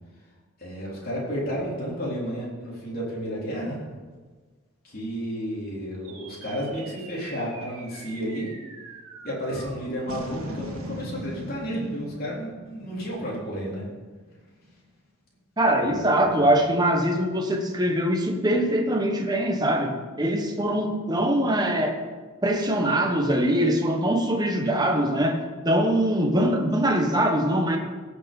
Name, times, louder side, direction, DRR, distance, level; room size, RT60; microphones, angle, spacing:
voice 1, 0.6-3.8 4.8-8.5 9.2-13.8 15.8-16.5, equal, 45° left, -5 dB, 3.7 m, -32 dB
sound 1, 6.0-14.6, equal, 80° right, 1.9 m, -40 dB
voice 2, 15.6-22.0 22.4-27.8, right 1 dB, 20° right, 3 dB, 1.2 m, -23 dB
17.5 x 6.5 x 5.3 m, 1.4 s
head